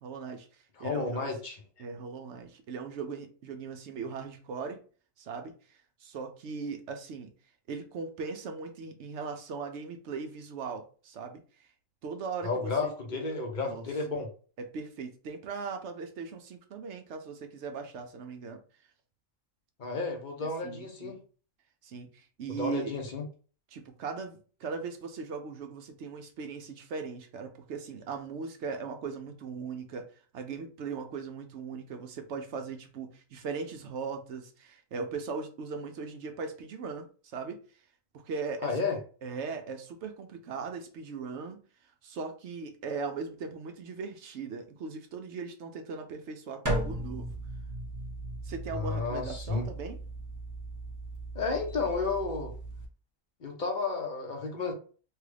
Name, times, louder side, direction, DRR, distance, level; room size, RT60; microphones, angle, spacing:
voice 1, 0.0-1.4 1.8-4.8 5.2-7.3 7.7-11.7 12.0-12.9 13.6-13.8 14.6-18.6 20.6-21.2 21.8-22.9 23.7-37.6 38.1-38.8 39.2-41.6 42.0-47.3 48.4-50.0, right 5 dB, 65° right, 0.8 m, -39 dB
voice 2, 0.8-1.6 12.4-14.3 19.8-21.2 22.5-23.2 38.6-39.0 48.7-49.7 51.3-52.5 53.4-54.7, left 4 dB, 40° left, 0.9 m, -32 dB
sound 1, 46.6-52.8, right 1 dB, 20° right, 0.6 m, -37 dB
3.3 x 2.3 x 3.3 m
omnidirectional pair, 1.4 m